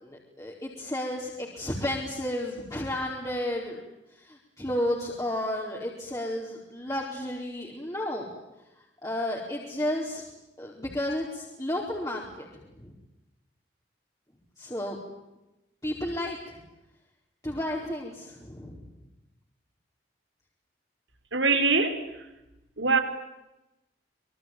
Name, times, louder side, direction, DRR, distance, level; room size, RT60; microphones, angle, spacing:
voice 1, 0.0-3.8 4.2-8.3 9.0-10.2 10.6-12.5 12.8-12.9 14.6-15.0 15.8-16.6 17.4-18.8, left 1 dB, 20° left, 4.6 m, -32 dB
voice 2, 21.3-22.0 22.8-23.0, right 4 dB, 90° right, 4.9 m, -22 dB
26.5 x 24.0 x 9.2 m
head